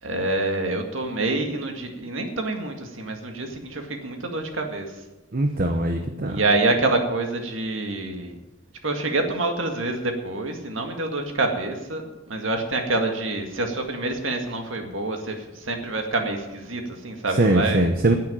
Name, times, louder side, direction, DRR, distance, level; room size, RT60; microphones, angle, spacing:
voice 1, 0.0-5.0 6.3-8.4 8.8-12.0 12.3-17.9, right 2 dB, 75° right, 4 dB, 2.0 m, -26 dB
voice 2, 5.3-6.4 17.4-18.1, right 1 dB, 45° right, 5 dB, 1.0 m, -21 dB
10.5 x 8.7 x 9.2 m, 1.1 s
head